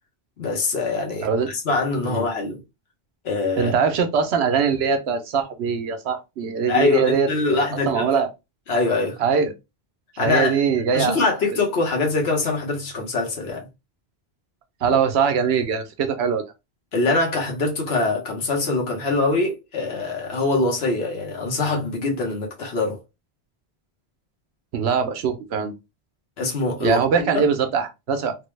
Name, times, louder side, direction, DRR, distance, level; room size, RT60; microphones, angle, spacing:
voice 1, 0.4-2.6 3.2-3.7 6.7-8.1 8.7-9.2 10.2-10.6 10.9-13.7 14.9-15.0 16.9-23.0 26.4-27.5, left 3 dB, 75° left, 1.2 m, -23 dB
voice 2, 3.6-8.3 9.2-9.5 10.1-11.2 11.5-11.6 14.8-16.4 24.7-25.8 26.8-28.5, right 6 dB, 85° right, 0.9 m, -22 dB
3.3 x 2.1 x 3.1 m
omnidirectional pair, 1.1 m